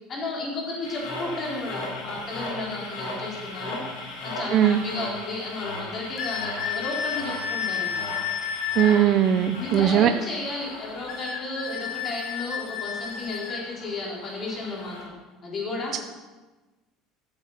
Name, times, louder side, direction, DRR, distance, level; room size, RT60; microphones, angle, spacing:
voice 1, 0.0-3.8 4.2-8.1 9.6-15.1 15.4-16.0, left 2 dB, 35° left, -3 dB, 4.2 m, -33 dB
sound 1, 0.8-15.0, left 2 dB, 85° left, 4.5 m, -38 dB
voice 2, 4.5-4.8 8.8-10.1, right 10 dB, 50° right, 8 dB, 0.5 m, -19 dB
sound 2, 6.2-8.9 11.1-13.6, left 8 dB, 55° left, 1.5 m, -31 dB
13.0 x 7.4 x 5.7 m, 1.2 s
cardioid pair, 130°, 0 cm